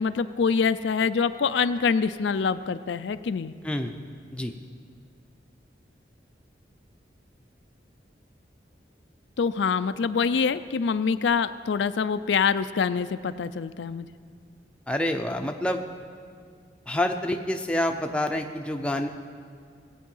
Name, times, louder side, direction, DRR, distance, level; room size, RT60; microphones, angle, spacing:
voice 1, 0.0-3.5 9.4-14.1, left 5 dB, 85° left, 12 dB, 0.4 m, -25 dB
voice 2, 14.9-15.8 16.9-19.1, left 1 dB, 5° left, 4 dB, 0.6 m, -27 dB
17.5 x 8.3 x 5.5 m, 2.3 s
head